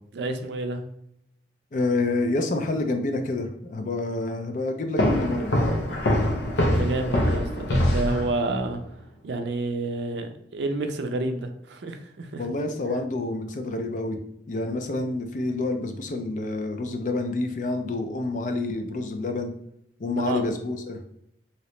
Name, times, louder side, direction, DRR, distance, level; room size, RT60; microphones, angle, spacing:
voice 1, 0.1-0.8 6.6-8.8 9.2-12.4 20.3-20.4, right 2 dB, 75° right, 6 dB, 0.4 m, -29 dB
voice 2, 1.7-5.6 12.4-14.2 14.5-19.5 20.0-21.0, left 2 dB, 45° left, 6 dB, 0.4 m, -28 dB
sound 1, 5.0-8.7, left 1 dB, 80° left, 0.7 m, -24 dB
2.9 x 2.9 x 3.1 m, 0.75 s
head